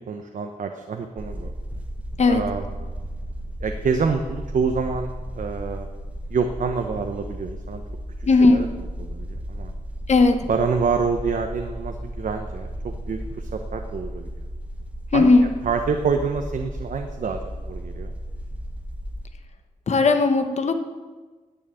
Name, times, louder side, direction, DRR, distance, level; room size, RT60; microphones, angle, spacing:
voice 1, 0.1-1.5 2.3-2.7 3.6-5.9 6.3-7.8 8.5-8.7 9.1-9.7 10.5-14.3 15.1-15.3 15.6-18.1, right 5 dB, 70° right, 5 dB, 0.9 m, -27 dB
sound 1, 1.2-19.3, equal, 10° right, 1.5 m, -34 dB
voice 2, 8.3-8.6 10.1-10.5 15.1-15.5 19.9-20.8, left 3 dB, 55° left, 7 dB, 1.2 m, -17 dB
10.5 x 9.2 x 9.1 m, 1.4 s
wide cardioid pair, 145°, 14 cm